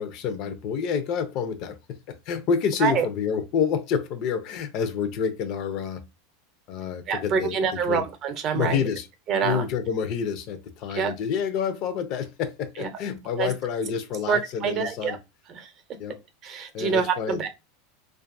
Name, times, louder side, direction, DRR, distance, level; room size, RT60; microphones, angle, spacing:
voice 1, 0.0-6.0 6.7-7.6 7.9-8.0 8.5-9.1 9.4-15.2 16.0-16.2 16.7-17.4, left 7 dB, 55° left, 0.4 m, -28 dB
voice 2, 7.1-8.8 9.3-9.7 10.9-11.1 12.8-12.9 13.4-13.5 14.3-15.2 15.5-15.7 16.4-17.5, right 6 dB, 45° right, 0.6 m, -26 dB
2.5 x 2.3 x 2.5 m
supercardioid pair, 110°, 0 cm